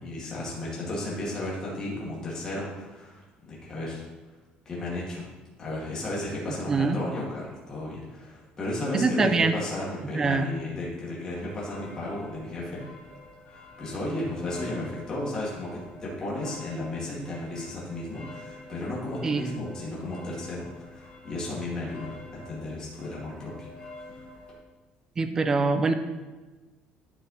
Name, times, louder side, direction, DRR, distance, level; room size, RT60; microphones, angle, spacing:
voice 1, 0.0-4.0 4.7-5.3 5.6-12.8 13.8-23.7 23.9-24.2, left 1 dB, 25° left, -6 dB, 2.0 m, -34 dB
voice 2, 8.9-9.5 10.1-10.5 19.2-19.4 25.2-25.9, right 3 dB, 20° right, 9 dB, 0.5 m, -23 dB
sound 1, 11.3-24.5, left 2 dB, 75° left, 2.6 m, -47 dB
11.0 x 4.5 x 4.1 m, 1.2 s
cardioid pair, 175°, 3 cm